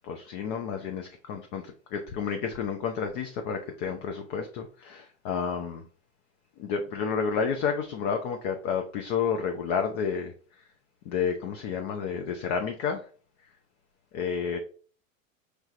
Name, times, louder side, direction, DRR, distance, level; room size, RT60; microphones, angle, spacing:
voice 1, 0.0-5.8 6.6-10.3 11.1-13.1 14.1-14.6, left 6 dB, 30° left, 5 dB, 0.4 m, -30 dB
4.3 x 3.2 x 2.4 m, 0.41 s
figure-of-eight pair, 95°, 41 cm